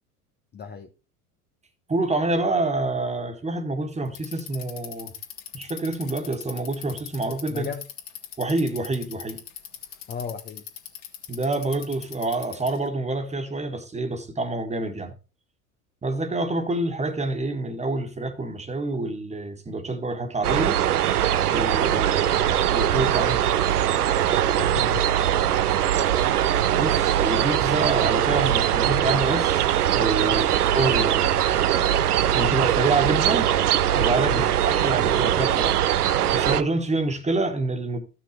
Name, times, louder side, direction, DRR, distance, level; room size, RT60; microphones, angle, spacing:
voice 1, 0.5-0.9 7.5-7.8 10.1-10.6 24.6-25.1 30.2-30.4 34.2-34.5, left 6 dB, 20° left, 0.7 m, -34 dB
voice 2, 1.9-5.1 5.5-7.7 8.4-9.4 11.3-15.1 16.0-20.8 21.5-23.6 26.8-29.7 29.9-31.4 32.3-33.5 34.0-35.8 36.3-38.0, right 2 dB, 15° right, 1.7 m, -27 dB
Bicycle, 4.1-12.9, left 10 dB, 50° left, 2.1 m, -40 dB
sound 1, 20.4-36.6, right 11 dB, 75° right, 0.7 m, -21 dB
14.5 x 6.0 x 3.2 m
figure-of-eight pair, 75°, 46 cm